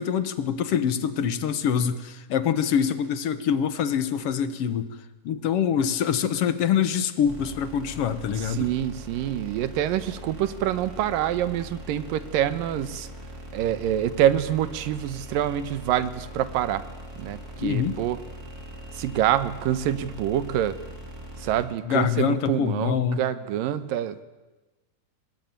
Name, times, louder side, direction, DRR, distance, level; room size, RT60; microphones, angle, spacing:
voice 1, 0.0-5.0 5.2-8.7 17.6-18.0 21.9-23.2, left 8 dB, 60° left, 11 dB, 1.7 m, -25 dB
sound 1, 7.3-21.6, equal, 25° right, 4.6 m, -41 dB
voice 2, 8.4-13.1 13.5-16.8 17.2-18.2 18.9-20.8 21.4-24.2, right 11 dB, 90° right, 13 dB, 2.8 m, -26 dB
23.5 x 20.0 x 9.3 m, 1.2 s
omnidirectional pair, 3.8 m